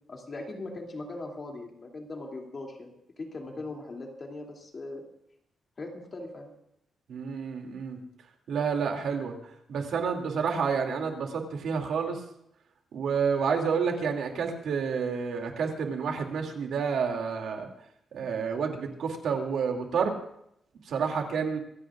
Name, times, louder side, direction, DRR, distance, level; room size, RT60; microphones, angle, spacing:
voice 1, 0.1-2.9 3.2-5.0 5.8-6.5 9.7-9.8, left 2 dB, 30° left, 0 dB, 2.7 m, -40 dB
voice 2, 7.1-8.0 8.5-9.4 9.7-12.2 12.9-17.7 18.1-20.2 20.9-21.6, right 6 dB, 70° right, 3 dB, 2.6 m, -29 dB
26.0 x 16.5 x 2.5 m, 0.74 s
wide cardioid pair, 170°, 0 cm